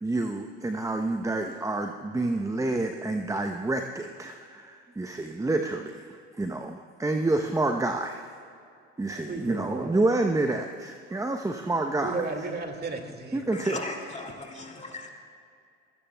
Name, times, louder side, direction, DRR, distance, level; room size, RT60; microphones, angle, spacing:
voice 1, 0.0-6.1 6.4-8.3 9.0-12.2 13.3-13.8, right 2 dB, 10° right, 5 dB, 0.8 m, -28 dB
voice 2, 9.1-10.1 12.0-13.4, right 3 dB, 30° right, 4 dB, 2.1 m, -34 dB
voice 3, 13.5-15.1, left 2 dB, 20° left, 2 dB, 2.5 m, -37 dB
28.5 x 16.5 x 2.3 m, 2.4 s
hypercardioid pair, 65°, 35 cm